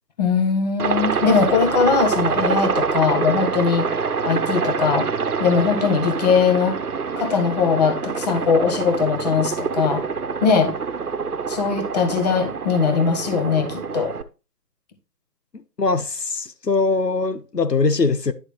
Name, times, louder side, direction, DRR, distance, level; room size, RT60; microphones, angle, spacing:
voice 1, 0.2-3.9 4.2-5.1 5.4-6.8 7.2-10.1 10.4-10.7 11.5-14.1, left 5 dB, 25° left, 1.5 m, -20 dB
Aircraft, 0.8-14.2, right 5 dB, 65° right, 1.2 m, -25 dB
voice 2, 15.5-18.3, left 3 dB, 85° left, 1.2 m, -22 dB
10.5 x 6.5 x 3.2 m
figure-of-eight pair, 145°, 48 cm